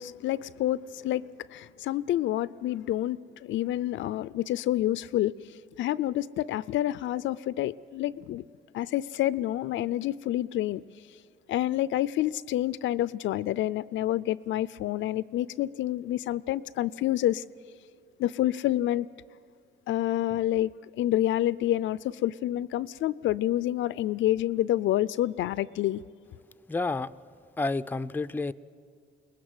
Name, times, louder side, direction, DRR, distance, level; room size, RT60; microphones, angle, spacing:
voice 1, 0.0-5.3 5.8-8.4 8.7-10.8 11.5-17.4 18.2-19.1 19.9-20.7 21.0-26.0, left 13 dB, 75° left, 0.5 m, -28 dB
voice 2, 26.7-27.1 27.6-28.5, left 3 dB, 10° left, 0.5 m, -29 dB
22.5 x 19.5 x 7.9 m
cardioid pair, 90°, 20 cm